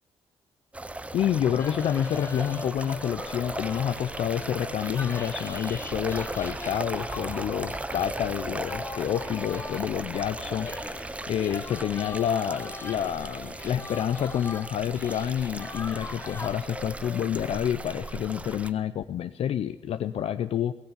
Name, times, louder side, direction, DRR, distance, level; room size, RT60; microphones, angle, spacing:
sound 1, 0.7-18.7, right 2 dB, 10° right, 0.6 m, -37 dB
voice 1, 1.1-10.7 11.3-20.7, left 9 dB, 65° left, 10 dB, 0.5 m, -28 dB
sound 2, 1.6-17.2, left 3 dB, 20° left, 1.2 m, -42 dB
18.5 x 7.2 x 9.5 m, 0.98 s
wide cardioid pair, 150°, 11 cm